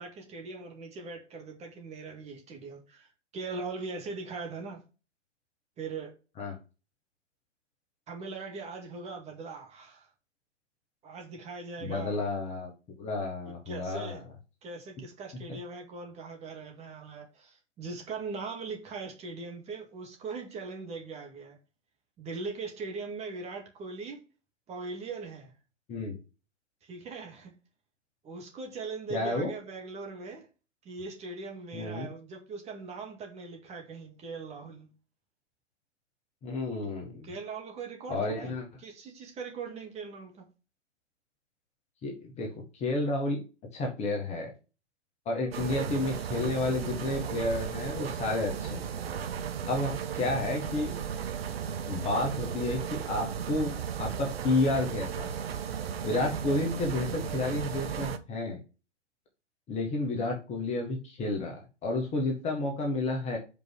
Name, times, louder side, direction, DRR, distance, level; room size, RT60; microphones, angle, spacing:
voice 1, 0.0-3.1 3.3-4.8 5.8-6.1 8.1-10.1 11.0-12.3 13.5-14.2 14.6-21.6 22.2-24.2 24.7-25.5 26.8-27.5 28.2-30.5 30.8-34.9 37.2-38.5 38.8-40.5, right 4 dB, 20° right, 2.1 m, -40 dB
voice 2, 11.8-12.7 13.0-14.2 25.9-26.2 29.1-29.5 31.7-32.1 36.4-37.3 38.1-38.7 42.0-43.4 43.7-44.5 45.2-48.9 49.7-50.9 51.9-55.3 56.0-58.6 59.7-63.4, left 2 dB, 20° left, 1.7 m, -31 dB
sound 1, 45.5-58.2, right 8 dB, 55° right, 1.0 m, -35 dB
5.4 x 4.7 x 6.4 m
figure-of-eight pair, 120°, 35 cm